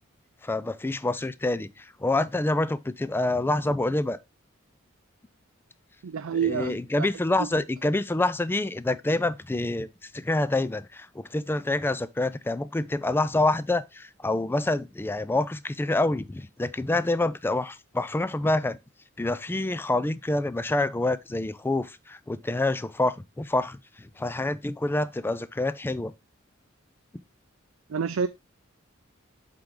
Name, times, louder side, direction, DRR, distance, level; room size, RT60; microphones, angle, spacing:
voice 1, 0.4-4.2 6.3-9.9 10.1-18.8 19.2-26.1, left 2 dB, 10° left, 0.3 m, -27 dB
voice 2, 6.0-7.1 7.4-7.5 27.9-28.3, right 7 dB, 75° right, 0.4 m, -28 dB
7.9 x 3.8 x 3.7 m
head